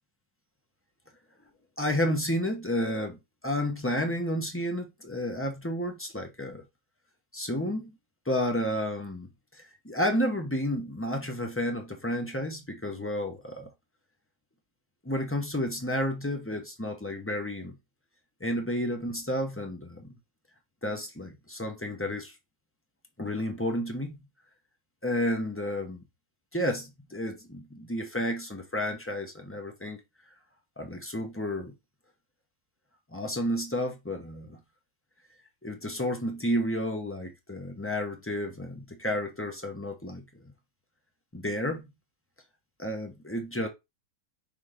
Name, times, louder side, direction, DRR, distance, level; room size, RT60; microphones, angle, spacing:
voice 1, 1.8-3.2 3.4-6.6 7.3-7.9 8.3-13.7 15.0-17.8 18.4-20.1 20.8-22.3 23.2-24.2 25.0-26.0 26.5-30.0 30.8-31.7 33.1-34.6 35.6-40.2 41.3-41.9 42.8-43.7, equal, 15° left, 0.5 m, -31 dB
5.7 x 3.5 x 4.9 m
omnidirectional pair, 2.1 m